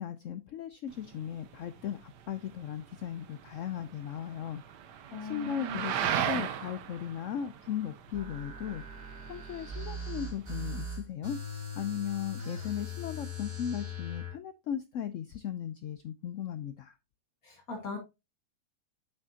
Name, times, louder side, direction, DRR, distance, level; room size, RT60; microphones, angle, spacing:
voice 1, 0.0-4.6 5.2-16.9, left 9 dB, 80° left, 11 dB, 0.7 m, -37 dB
sound 1, 0.9-10.8, right 9 dB, 75° right, 1.4 m, -38 dB
voice 2, 5.1-5.8 17.4-18.0, left 3 dB, 55° left, 1 dB, 2.2 m, -39 dB
sound 2, 8.1-14.3, left 2 dB, 35° right, 3.9 m, -40 dB
7.5 x 6.1 x 2.7 m, 0.25 s
omnidirectional pair, 1.9 m